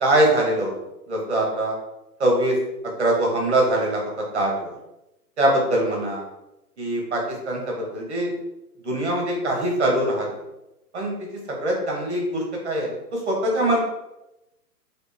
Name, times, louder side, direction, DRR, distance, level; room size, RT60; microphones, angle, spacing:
voice 1, 0.0-0.7 1.1-1.8 2.2-2.6 3.0-4.7 5.4-6.2 6.8-8.3 8.8-10.3 10.9-13.8, right 1 dB, 45° right, -1 dB, 1.0 m, -23 dB
4.2 x 2.4 x 3.3 m, 0.93 s
hypercardioid pair, 180°, 48 cm